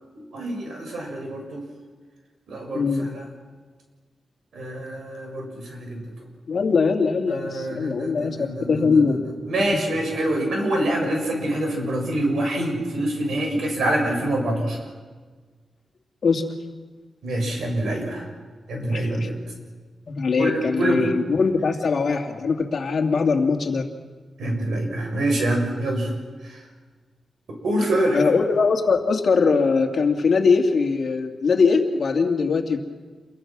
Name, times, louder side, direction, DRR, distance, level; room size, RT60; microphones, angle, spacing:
voice 1, 0.2-1.6 2.5-3.3 4.5-6.0 7.3-9.1 9.5-14.8 17.2-18.3 18.7-19.3 20.4-21.1 24.4-26.1 26.4-26.6 27.6-28.2, right 1 dB, 90° right, 1 dB, 7.3 m, -25 dB
voice 2, 2.7-3.1 6.5-9.3 9.6-9.7 16.2-16.4 18.8-19.3 20.1-23.8 28.1-32.8, left 4 dB, 50° left, 3 dB, 2.4 m, -21 dB
29.0 x 22.0 x 6.2 m, 1.4 s
wide cardioid pair, 155°, 0 cm